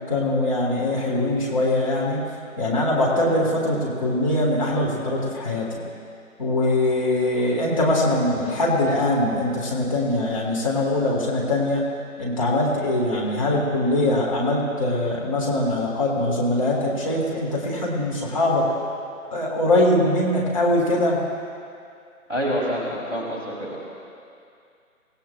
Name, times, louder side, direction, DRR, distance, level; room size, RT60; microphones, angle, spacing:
voice 1, 0.1-2.2 2.6-5.7 6.4-11.8 12.2-18.7 19.3-21.2, left 1 dB, 25° left, -5 dB, 1.9 m, -22 dB
voice 2, 22.3-23.9, equal, 5° right, -12 dB, 1.9 m, -27 dB
25.0 x 17.0 x 2.4 m, 2.4 s
figure-of-eight pair, 155°, 42 cm